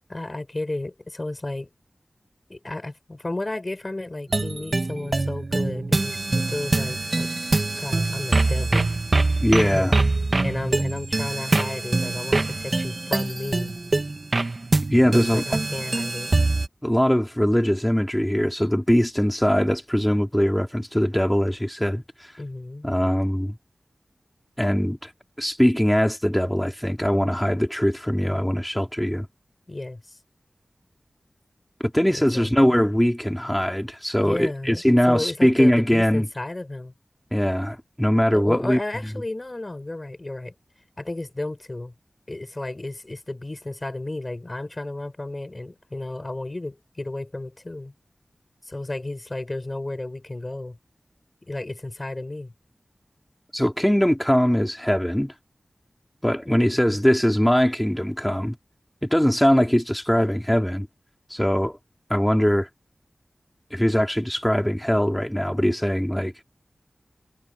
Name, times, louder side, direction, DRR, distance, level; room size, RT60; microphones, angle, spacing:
voice 1, 0.1-1.7 2.5-7.3 7.8-8.9 9.6-10.0 10.4-13.7 15.0-16.3 22.4-22.9 29.7-30.2 32.1-32.7 34.2-36.9 38.3-40.5 41.0-41.9 42.3-47.9 48.6-50.8 51.4-52.5 56.5-57.0, left 2 dB, 40° left, 4.9 m, -33 dB
sound 1, 4.3-16.7, right 2 dB, 50° right, 1.7 m, -24 dB
voice 2, 9.4-9.9 14.9-15.4 16.8-22.3 22.8-23.6 24.6-25.1 25.4-29.3 31.8-36.3 37.3-38.8 53.5-55.3 56.2-58.6 59.0-60.9 61.3-61.8 62.1-62.7 63.7-66.4, equal, 5° left, 3.9 m, -21 dB
cardioid pair, 40°, 0 cm